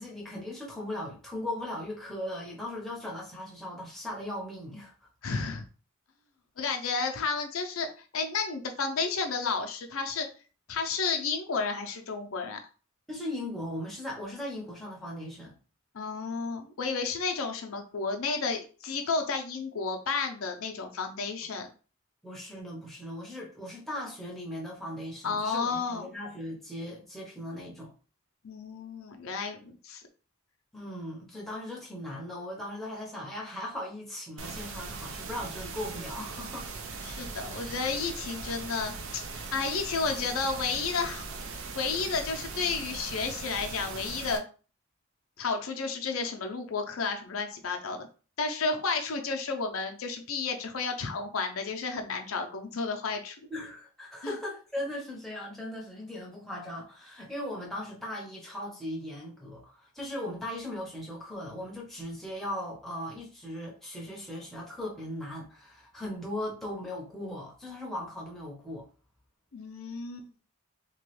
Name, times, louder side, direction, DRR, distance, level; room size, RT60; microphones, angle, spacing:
voice 1, 0.0-4.9 13.1-15.6 22.2-27.9 30.7-36.7 37.1-37.2 53.5-68.9, left 1 dB, ahead, 0.7 m, -38 dB
voice 2, 5.2-5.6 6.6-7.9 8.1-10.3 10.7-12.6 15.9-21.7 25.2-26.1 28.4-30.0 37.0-41.3 41.7-44.4 45.4-48.1 48.4-53.4 54.2-54.3 69.5-70.3, left 4 dB, 75° left, 0.5 m, -32 dB
sound 1, 34.4-44.4, right 4 dB, 65° right, 0.5 m, -40 dB
2.9 x 2.3 x 3.1 m
head